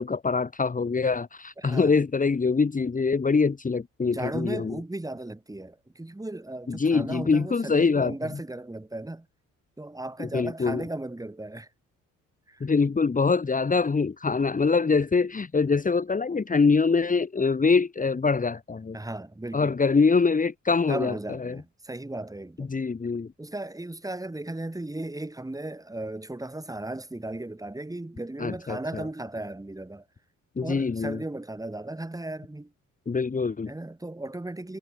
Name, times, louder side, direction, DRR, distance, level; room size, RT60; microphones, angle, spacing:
voice 1, 0.0-4.8 6.7-8.1 10.2-10.8 12.6-19.0 19.5-21.1 21.4-21.6 22.6-23.3 28.4-29.0 30.6-31.2 33.1-33.7, left 4 dB, 25° left, 2.1 m, -24 dB
voice 2, 1.6-1.9 4.1-9.3 9.8-11.7 12.5-12.7 18.9-19.8 20.9-22.7 23.4-30.0 30.6-32.7 33.7-34.8, right 2 dB, 10° right, 6.0 m, -36 dB
cardioid pair, 90°, 30 cm